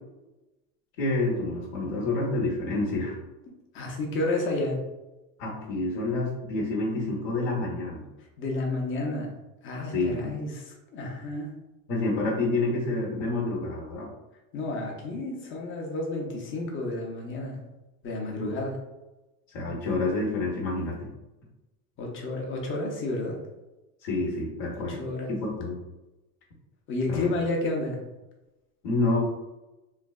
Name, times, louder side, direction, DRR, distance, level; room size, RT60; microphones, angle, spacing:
voice 1, 1.0-3.2 5.4-8.0 9.9-10.3 11.9-14.1 18.4-18.6 19.5-21.1 24.0-25.0 25.3-25.8 27.1-27.3 28.8-29.2, left 2 dB, 60° left, -3 dB, 0.9 m, -28 dB
voice 2, 3.7-4.8 8.4-9.3 9.6-11.5 14.5-17.6 18.0-18.8 22.0-23.4 24.7-25.3 26.9-28.0, left 2 dB, 30° left, 0 dB, 0.7 m, -31 dB
3.2 x 2.2 x 2.3 m, 1.0 s
supercardioid pair, 120°, 44 cm